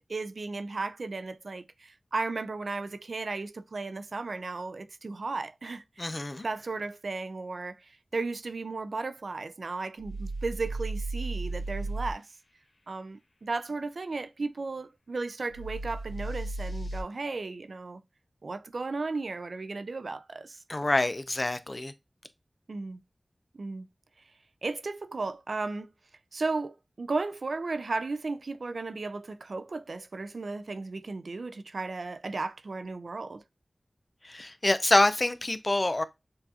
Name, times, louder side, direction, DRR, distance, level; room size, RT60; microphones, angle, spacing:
voice 1, 0.1-6.1 6.4-12.3 12.9-18.0 18.4-20.6 22.7-23.0 23.5-23.9 24.6-25.9 26.3-33.4, right 3 dB, 80° right, 0.3 m, -35 dB
voice 2, 6.0-6.5 20.7-21.9 34.2-36.0, left 2 dB, 40° left, 0.5 m, -26 dB
sound 1, 10.0-12.1 15.5-17.0, right 2 dB, 85° left, 0.8 m, -34 dB
6.8 x 2.4 x 2.7 m
wide cardioid pair, 50°, 0 cm